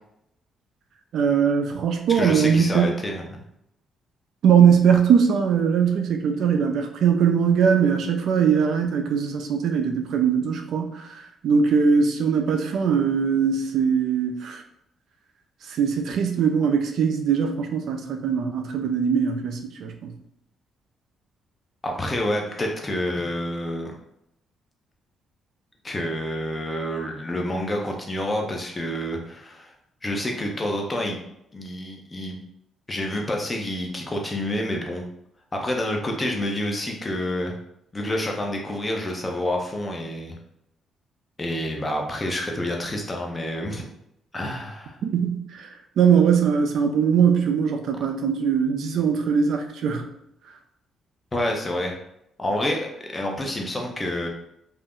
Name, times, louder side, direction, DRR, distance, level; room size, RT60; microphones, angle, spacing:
voice 1, 1.1-2.9 4.4-14.6 15.7-20.1 45.0-45.7 46.0-50.1, right 7 dB, 70° right, 5 dB, 0.4 m, -21 dB
voice 2, 2.1-3.4 21.8-23.9 25.8-29.7 30.0-31.2 31.5-32.4 32.9-35.0 35.5-37.5 37.9-40.3 41.4-43.8 44.3-45.0 51.3-52.0 52.4-54.3, left 1 dB, 25° left, 1 dB, 0.7 m, -28 dB
2.5 x 2.1 x 3.5 m, 0.78 s
cardioid pair, 90°, 0 cm